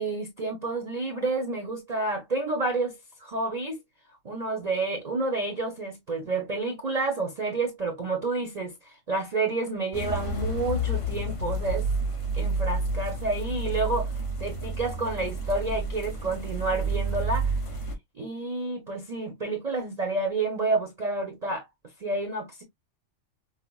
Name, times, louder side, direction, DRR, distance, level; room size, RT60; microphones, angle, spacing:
voice 1, 0.0-2.9 3.2-3.8 4.2-11.9 12.4-14.1 14.4-17.5 18.2-21.6 22.0-22.6, right 3 dB, 40° right, 0.7 m, -29 dB
sound 1, 9.9-17.9, right 2 dB, 30° left, 0.9 m, -30 dB
5.6 x 2.0 x 2.3 m
omnidirectional pair, 1.3 m